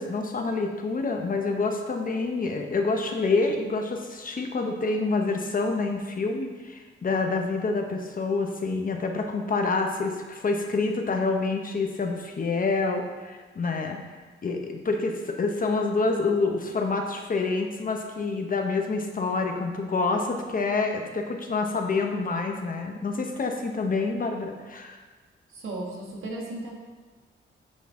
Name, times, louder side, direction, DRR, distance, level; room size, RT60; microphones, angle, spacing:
voice 1, 0.0-14.0 14.4-25.0, left 3 dB, 45° left, 3 dB, 0.8 m, -27 dB
voice 2, 25.5-26.7, right 2 dB, 80° right, -2 dB, 1.5 m, -35 dB
10.5 x 3.9 x 3.7 m, 1.3 s
cardioid pair, 105°, 21 cm